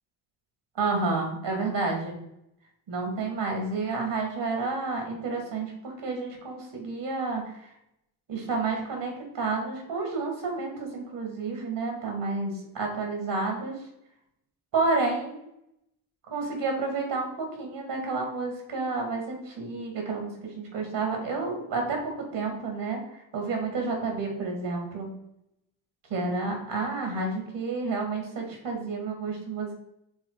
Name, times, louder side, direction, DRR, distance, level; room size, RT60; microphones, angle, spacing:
voice 1, 0.7-2.1 2.9-7.7 8.3-13.8 14.7-15.4 16.3-22.0 22.3-25.1 26.1-29.7, right 3 dB, 70° right, 2 dB, 2.6 m, -30 dB
7.0 x 3.9 x 4.1 m, 0.80 s
supercardioid pair, 60°, 45 cm